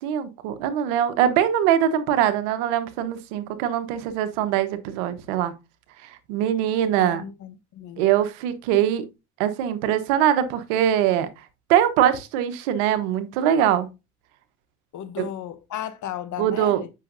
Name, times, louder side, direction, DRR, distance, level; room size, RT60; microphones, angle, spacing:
voice 1, 0.0-5.5 6.3-7.2 8.0-9.1 9.4-11.3 11.7-13.9 15.2-15.3 16.4-16.8, right 10 dB, 85° right, 1.1 m, -22 dB
voice 2, 7.0-8.0 14.9-16.9, left 10 dB, 55° left, 1.0 m, -35 dB
8.4 x 5.9 x 2.6 m
supercardioid pair, 70°, 35 cm